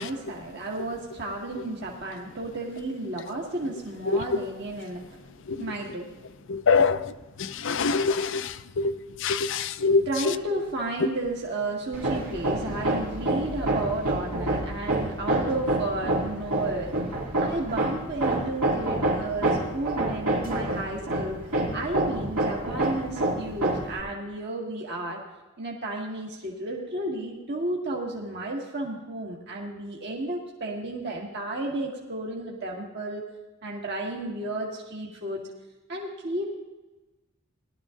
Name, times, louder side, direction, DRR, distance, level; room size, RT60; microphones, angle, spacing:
voice 1, 0.0-5.2 5.6-6.1 6.8-6.9 10.0-16.9 17.4-21.4 21.7-25.2 25.6-33.2 33.6-35.4 35.9-36.6, right 2 dB, 50° right, 1.7 m, -32 dB
voice 2, 6.5-7.0 7.4-8.9 9.2-10.0, left 4 dB, 60° left, 0.5 m, -24 dB
Hammer, 11.9-24.0, right 2 dB, 80° right, 2.4 m, -28 dB
19.0 x 12.0 x 2.5 m
head